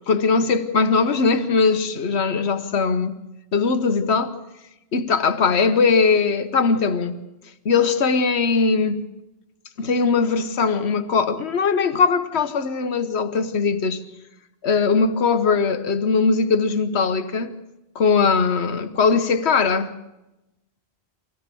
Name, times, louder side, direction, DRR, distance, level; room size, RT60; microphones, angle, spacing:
voice 1, 0.1-3.2 3.5-4.4 4.9-7.2 7.6-9.0 9.8-14.0 14.6-17.5 17.9-19.9, left 5 dB, 80° left, 1.4 m, -20 dB
24.0 x 17.0 x 6.9 m
omnidirectional pair, 1.1 m